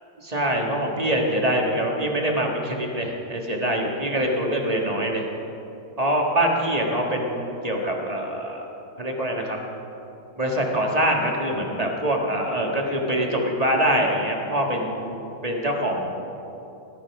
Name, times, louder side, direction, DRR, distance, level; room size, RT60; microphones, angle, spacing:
voice 1, 0.2-5.3 6.0-8.7 9.0-9.6 10.4-16.1, right 1 dB, 20° right, 0 dB, 1.4 m, -24 dB
18.0 x 10.5 x 6.0 m, 2.9 s
omnidirectional pair, 2.4 m